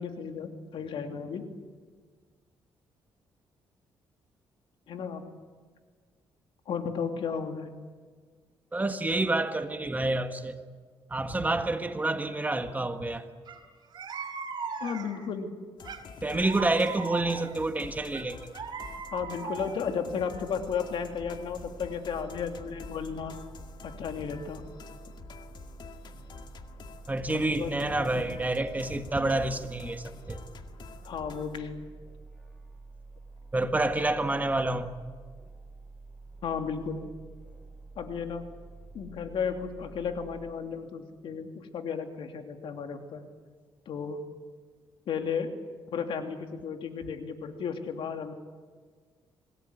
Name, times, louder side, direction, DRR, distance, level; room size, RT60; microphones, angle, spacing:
voice 1, 0.0-1.4 4.9-5.2 6.7-7.7 14.8-15.5 19.1-23.3 23.8-24.6 27.5-27.7 28.0-28.4 31.0-31.8 36.4-37.1 38.0-38.5 38.9-43.2 43.9-44.2 45.1-45.5 45.9-48.3, left 6 dB, 70° left, 2.9 m, -34 dB
voice 2, 8.7-10.6 11.1-13.2 16.2-18.5 27.1-30.4 33.5-34.9, right 2 dB, 20° right, 1.6 m, -28 dB
sound 1, 13.4-13.6 13.9-15.3 15.8-17.6 18.1-19.9, right 5 dB, 50° right, 3.9 m, -38 dB
sound 2, 15.8-31.6, left 5 dB, 55° left, 2.1 m, -48 dB
sound 3, 20.6-40.5, right 3 dB, 10° left, 4.6 m, -49 dB
26.5 x 19.0 x 9.8 m
cardioid pair, 110°, 9 cm